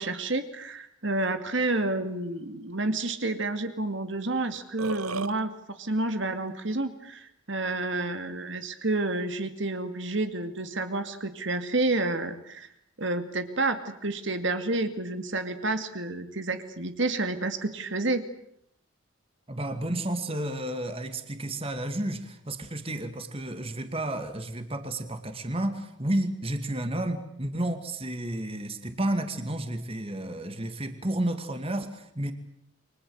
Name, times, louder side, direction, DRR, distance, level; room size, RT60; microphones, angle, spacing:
voice 1, 0.0-12.7 13.0-18.2, right 2 dB, 55° right, 8 dB, 2.3 m, -29 dB
Burping eructation, 4.5-5.3, right 4 dB, 90° right, 1.1 m, -33 dB
voice 2, 19.5-32.3, right 1 dB, 25° right, 8 dB, 2.4 m, -31 dB
29.0 x 24.5 x 8.1 m, 0.74 s
head